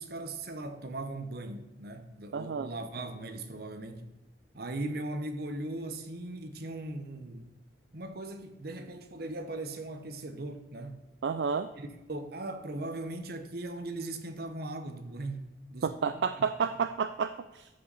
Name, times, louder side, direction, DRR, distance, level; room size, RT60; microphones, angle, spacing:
voice 1, 0.0-4.1 4.5-7.5 7.9-11.0 11.7-16.5, right 2 dB, 60° right, 1.0 m, -39 dB
voice 2, 2.3-2.7 11.2-11.7 15.8-17.7, right 6 dB, 75° right, 0.4 m, -30 dB
14.0 x 5.5 x 4.1 m
head